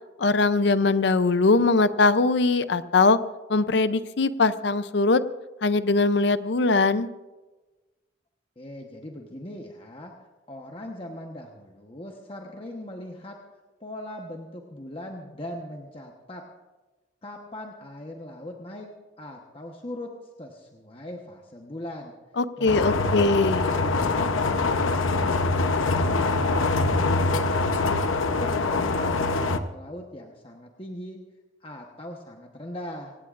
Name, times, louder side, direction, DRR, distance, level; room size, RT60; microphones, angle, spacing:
voice 1, 0.2-3.2 3.5-5.2 5.6-7.1 22.4-23.6, left 3 dB, 60° left, 13 dB, 0.6 m, -21 dB
voice 2, 8.6-13.4 13.8-16.5 17.2-18.9 19.2-20.1 20.4-22.1 22.6-28.0 28.4-31.2 31.6-33.1, left 1 dB, 25° left, 1 dB, 1.1 m, -39 dB
sound 1, 22.7-29.6, left 3 dB, 85° left, 0.9 m, -24 dB
26.0 x 17.0 x 2.5 m, 1.2 s
head